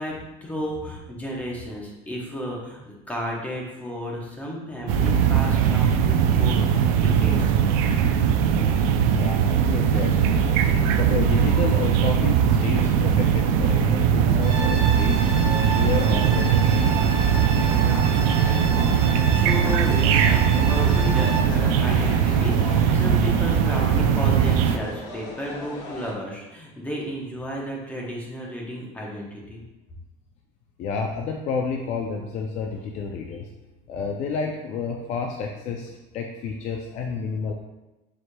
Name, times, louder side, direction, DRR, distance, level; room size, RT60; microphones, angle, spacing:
voice 1, 0.0-7.6 17.8-29.6, equal, 10° left, -3 dB, 0.8 m, -33 dB
sound 1, 4.9-24.8, right 7 dB, 85° right, 0.4 m, -20 dB
voice 2, 9.1-10.6 10.9-15.2 15.7-17.0 30.8-33.5 33.9-37.5, left 5 dB, 40° left, 1 dB, 0.4 m, -30 dB
sound 2, 14.4-21.4, right 4 dB, 20° right, 1.1 m, -32 dB
sound 3, 15.2-26.1, left 1 dB, 70° left, 1.3 m, -39 dB
4.7 x 4.1 x 2.2 m, 1.0 s
cardioid pair, 155°, 18 cm